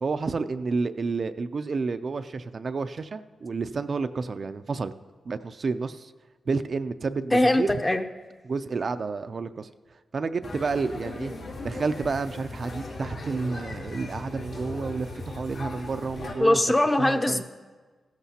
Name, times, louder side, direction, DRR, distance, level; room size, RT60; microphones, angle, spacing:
voice 1, 0.0-4.9 5.3-6.1 6.5-7.7 8.4-9.7 10.1-11.3 11.6-16.6 17.0-17.4, right 4 dB, 50° right, 10 dB, 0.4 m, -30 dB
voice 2, 7.3-8.0 16.4-17.4, left 1 dB, 15° left, 7 dB, 0.6 m, -21 dB
sound 1, 10.4-16.3, left 2 dB, 90° left, 2.4 m, -38 dB
15.0 x 14.0 x 2.8 m, 1.4 s
cardioid pair, 90°, 0 cm